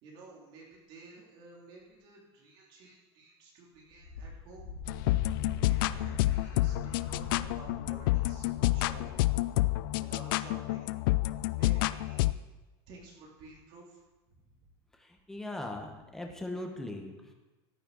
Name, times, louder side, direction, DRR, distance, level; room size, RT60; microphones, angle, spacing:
voice 1, 0.0-4.7 5.7-9.3 9.9-11.0 11.5-12.3 12.9-14.7, right 3 dB, 40° right, -2 dB, 2.9 m, -53 dB
Wind, 3.9-9.3, left 3 dB, 75° left, 2.6 m, -42 dB
sound 1, 4.9-12.3, left 18 dB, 60° left, 0.4 m, -29 dB
voice 2, 14.9-17.3, left 1 dB, 5° left, 2 dB, 1.0 m, -40 dB
14.0 x 9.9 x 4.0 m, 1.1 s
supercardioid pair, 175°, 13 cm